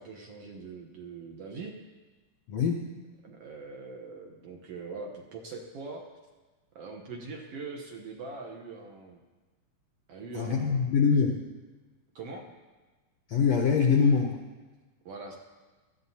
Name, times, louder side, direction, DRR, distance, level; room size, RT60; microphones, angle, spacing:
voice 1, 0.0-1.8 3.2-6.0 6.7-9.2 10.1-10.8 12.1-12.5 15.0-15.4, right 4 dB, 70° right, 2 dB, 1.5 m, -42 dB
voice 2, 2.5-2.8 10.3-11.4 13.3-14.4, left 5 dB, 80° left, 2 dB, 1.5 m, -24 dB
18.5 x 14.0 x 2.8 m, 1.3 s
omnidirectional pair, 4.1 m